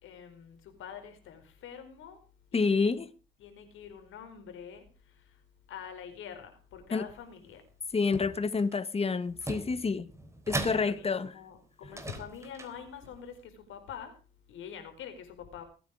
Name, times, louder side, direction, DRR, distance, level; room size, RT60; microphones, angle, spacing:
voice 1, 0.0-2.2 2.5-3.0 3.4-5.4 5.7-7.6 10.6-14.1 14.5-15.6, left 8 dB, 85° left, 4.8 m, -46 dB
voice 2, 2.5-3.1 6.9-7.0 7.9-10.1 10.5-11.3, left 4 dB, 30° left, 1.5 m, -28 dB
sound 1, 7.9-8.8 9.3-11.3 11.8-13.2, right 2 dB, 15° right, 3.8 m, -40 dB
22.0 x 9.3 x 5.0 m
cardioid pair, 90°, 20 cm